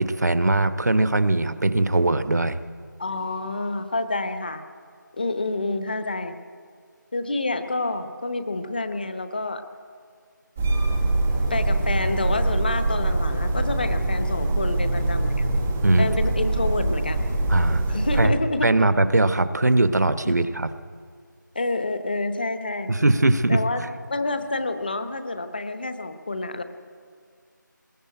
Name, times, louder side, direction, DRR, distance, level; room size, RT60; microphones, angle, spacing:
voice 1, 0.0-2.6 15.8-16.1 17.5-17.9 18.2-18.3 18.6-20.7 22.9-23.6, right 2 dB, 55° right, 12 dB, 1.1 m, -20 dB
voice 2, 3.0-4.6 5.2-6.3 7.1-9.6 11.5-15.5 16.0-17.3 17.9-18.7 20.2-20.3 21.5-22.9 23.5-23.8 24.1-26.6, left 2 dB, 25° left, 10 dB, 0.9 m, -28 dB
sound 1, 10.6-18.3, right 2 dB, 5° right, 0.5 m, -24 dB
20.5 x 17.5 x 8.9 m, 2.1 s
figure-of-eight pair, 170°, 11 cm